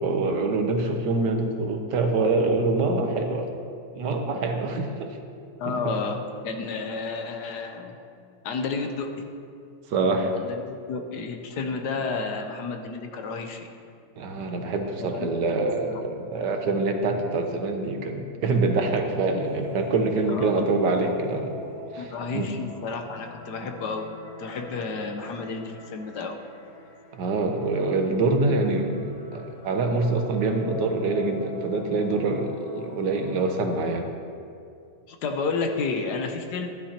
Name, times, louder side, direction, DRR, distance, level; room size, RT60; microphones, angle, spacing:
voice 1, 0.0-3.5 4.0-5.2 5.7-5.9 9.9-10.3 14.2-21.5 21.9-22.5 27.1-29.1 29.3-34.1, right 3 dB, 70° right, 4 dB, 1.5 m, -25 dB
voice 2, 5.6-8.0 8.4-9.1 10.4-13.7 15.0-15.3 15.6-15.7 20.3-20.7 21.0-21.1 22.0-24.1 24.4-26.4 35.1-36.7, left 4 dB, 70° left, 5 dB, 1.3 m, -31 dB
sound 1, 19.4-34.0, left 1 dB, 45° left, 1.8 m, -44 dB
12.5 x 11.5 x 2.9 m, 2.4 s
omnidirectional pair, 1.9 m